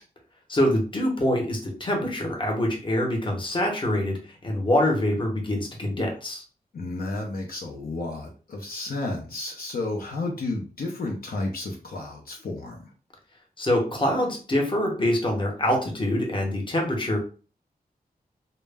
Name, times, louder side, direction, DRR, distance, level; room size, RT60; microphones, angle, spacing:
voice 1, 0.5-6.4 13.6-17.2, left 1 dB, 30° left, 1 dB, 0.8 m, -25 dB
voice 2, 6.7-12.9, left 2 dB, 70° left, 0 dB, 0.5 m, -32 dB
2.1 x 2.0 x 3.3 m, 0.37 s
wide cardioid pair, 105°, 16 cm